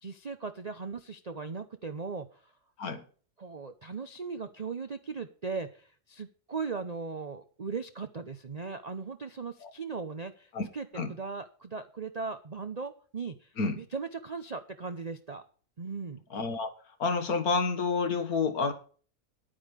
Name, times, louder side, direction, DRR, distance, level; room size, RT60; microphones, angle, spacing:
voice 1, 0.0-2.5 3.4-15.4 15.8-16.2, right 4 dB, 40° right, 8 dB, 0.6 m, -38 dB
voice 2, 16.3-16.7 17.0-18.7, left 4 dB, 65° left, 8 dB, 2.0 m, -29 dB
10.0 x 9.2 x 5.1 m, 0.42 s
omnidirectional pair, 1.7 m